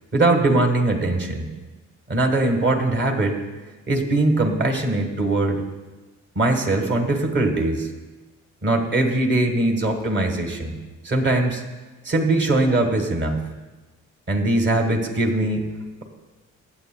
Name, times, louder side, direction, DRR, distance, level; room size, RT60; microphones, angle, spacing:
voice 1, 0.1-1.5 2.1-3.4 3.9-5.6 6.3-7.9 8.6-10.7 11.0-11.6 12.0-13.4 14.3-15.7, right 2 dB, 40° right, 4 dB, 1.5 m, -21 dB
15.0 x 9.0 x 2.2 m, 1.2 s
cardioid pair, 90°, 30 cm